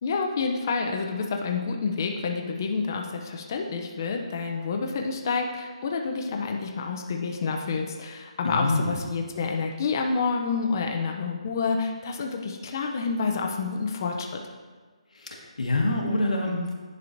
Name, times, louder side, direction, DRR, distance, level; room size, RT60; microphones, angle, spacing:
voice 1, 0.0-14.4, left 4 dB, 30° left, 2 dB, 0.5 m, -28 dB
voice 2, 8.4-9.0 15.1-16.7, left 2 dB, 80° left, 0 dB, 1.3 m, -26 dB
10.5 x 4.5 x 2.6 m, 1.4 s
hypercardioid pair, 170°, 4 cm